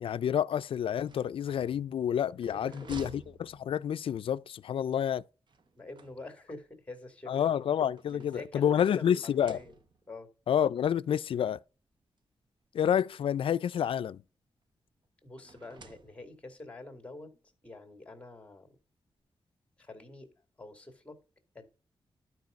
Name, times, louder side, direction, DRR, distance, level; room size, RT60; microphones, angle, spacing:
voice 1, 0.0-5.2 7.3-9.6 10.5-11.6 12.7-14.2, left 9 dB, 70° left, 0.3 m, -29 dB
sound 1, 1.0-4.2 5.5-6.6 7.5-8.9 9.2-10.2 11.1-11.2 11.5-11.6 12.8-14.2 15.4-16.5, right 4 dB, 55° right, 0.9 m, -53 dB
voice 2, 2.5-3.1 5.8-7.7 8.1-9.8 10.1-10.3 15.2-18.8 19.8-20.3 20.6-21.2 21.5-21.7, left 2 dB, 15° left, 2.3 m, -47 dB
12.0 x 4.7 x 5.1 m
wide cardioid pair, 135°, 9 cm